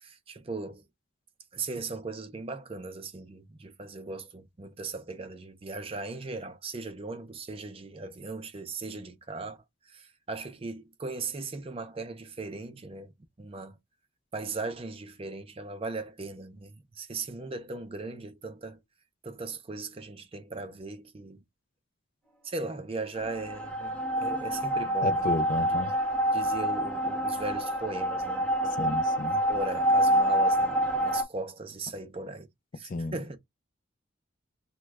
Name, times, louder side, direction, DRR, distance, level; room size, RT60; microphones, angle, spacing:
voice 1, 0.0-0.8 1.5-9.6 9.9-13.1 13.4-13.8 14.3-18.8 19.2-21.4 22.4-25.3 25.5-25.7 26.3-29.0 29.5-32.5 32.8-33.4, right 3 dB, 30° right, 0.5 m, -38 dB
sound 1, 23.2-31.2, right 1 dB, 5° left, 0.8 m, -27 dB
voice 2, 25.0-25.9 28.8-29.4 32.8-33.1, left 3 dB, 45° left, 0.4 m, -32 dB
3.0 x 2.2 x 3.3 m
head